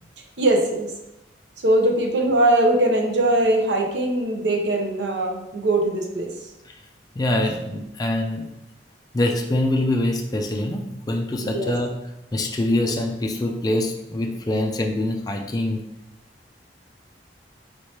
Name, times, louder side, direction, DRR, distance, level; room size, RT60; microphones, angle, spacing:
voice 1, 0.4-0.9 1.6-6.3 11.4-11.7, right 1 dB, 85° right, 2 dB, 0.6 m, -21 dB
voice 2, 7.2-8.5 9.1-11.9 12.3-15.8, left 1 dB, 20° left, 1 dB, 0.4 m, -24 dB
4.3 x 3.2 x 2.8 m, 0.88 s
head